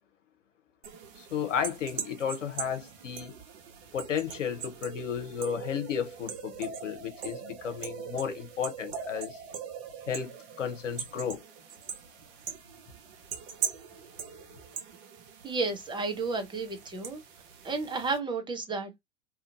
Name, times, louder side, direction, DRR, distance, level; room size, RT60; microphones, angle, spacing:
sound 1, 0.8-18.2, right 7 dB, 50° right, 0.9 m, -41 dB
voice 1, 1.2-3.4 3.9-9.4 10.1-11.4, left 8 dB, 80° left, 0.9 m, -33 dB
voice 2, 15.4-17.2 17.6-19.0, right 3 dB, 10° right, 0.8 m, -32 dB
2.8 x 2.5 x 2.5 m
figure-of-eight pair, 90°, 37 cm